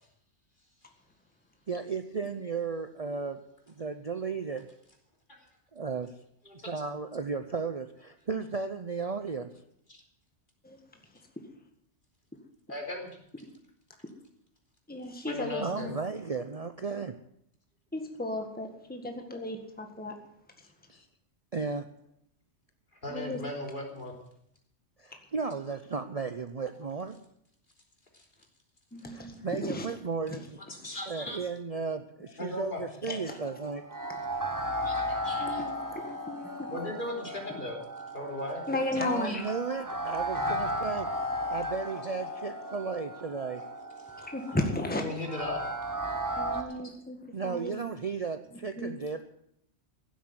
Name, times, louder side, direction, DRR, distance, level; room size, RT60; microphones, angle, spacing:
voice 1, 1.7-3.4 3.7-4.7 5.7-6.1 6.7-9.5 15.6-17.1 20.9-21.1 21.5-21.9 25.0-27.1 29.1-30.6 31.1-33.8 39.0-41.1 41.5-43.6 47.3-49.2, right 5 dB, 35° right, 8 dB, 0.7 m, -34 dB
voice 2, 12.7-13.1 15.2-15.9 23.0-24.1 30.6-31.4 32.4-32.8 33.1-33.2 34.8-35.6 36.7-37.8 38.1-38.6 38.9-39.4 45.0-45.6 46.6-46.7, left 1 dB, 45° left, 0 dB, 3.8 m, -37 dB
voice 3, 14.9-15.9 17.9-20.1 23.1-23.4 28.9-29.9 30.3-30.4 30.8-31.0 33.1-33.2 34.1-34.2 35.4-36.7 38.7-39.4 44.2-45.0 46.4-47.2 47.4-47.7 48.8-48.9, left 1 dB, 5° left, 4 dB, 1.7 m, -34 dB
sound 1, 33.3-46.6, equal, 15° right, 1.5 m, -35 dB
16.0 x 8.3 x 9.5 m, 0.73 s
omnidirectional pair, 1.2 m